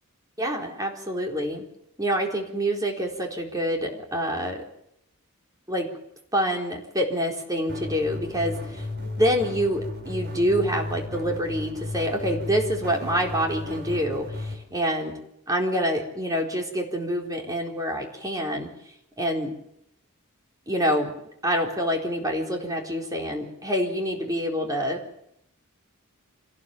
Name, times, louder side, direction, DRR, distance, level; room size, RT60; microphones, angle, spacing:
voice 1, 0.4-1.6 2.0-4.6 5.7-5.9 6.3-15.2 15.5-18.7 19.2-19.5 20.7-21.1 21.4-25.0, equal, 15° right, 1 dB, 4.0 m, -26 dB
sound 1, 7.7-14.5, left 2 dB, 50° right, 5.7 m, -34 dB
26.5 x 18.5 x 7.4 m, 0.77 s
head